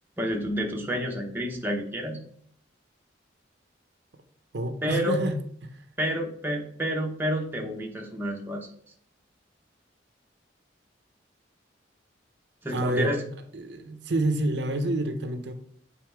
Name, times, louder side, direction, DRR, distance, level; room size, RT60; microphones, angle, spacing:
voice 1, 0.2-2.2 4.8-5.2 6.0-8.7 12.6-13.2, equal, 10° right, 0.9 m, -29 dB
voice 2, 4.5-5.4 5.6-5.8 12.7-13.1 13.5-15.5, right 1 dB, 65° right, 0.7 m, -28 dB
7.6 x 4.1 x 4.6 m
head